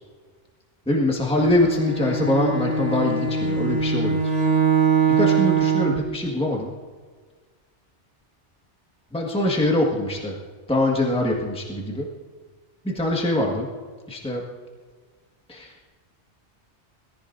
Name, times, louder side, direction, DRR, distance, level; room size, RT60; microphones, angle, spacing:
voice 1, 0.9-4.4 5.1-6.7 9.1-10.3 10.7-12.1 12.8-13.7 14.1-14.4 15.5-15.8, left 1 dB, 5° left, -1 dB, 1.6 m, -23 dB
Bowed string instrument, 1.3-6.1, right 5 dB, 80° right, 2.4 m, -22 dB
21.5 x 15.5 x 2.6 m, 1.5 s
omnidirectional pair, 1.2 m